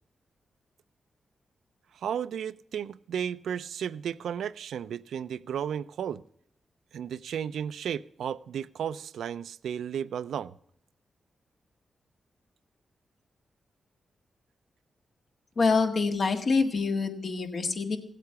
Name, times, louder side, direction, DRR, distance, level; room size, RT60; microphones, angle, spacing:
voice 1, 1.9-6.2 6.9-10.5, right 8 dB, 85° right, 0.4 m, -34 dB
voice 2, 15.6-18.0, left 4 dB, 60° left, 1.7 m, -26 dB
16.5 x 8.3 x 5.7 m
cardioid pair, 60°, 0 cm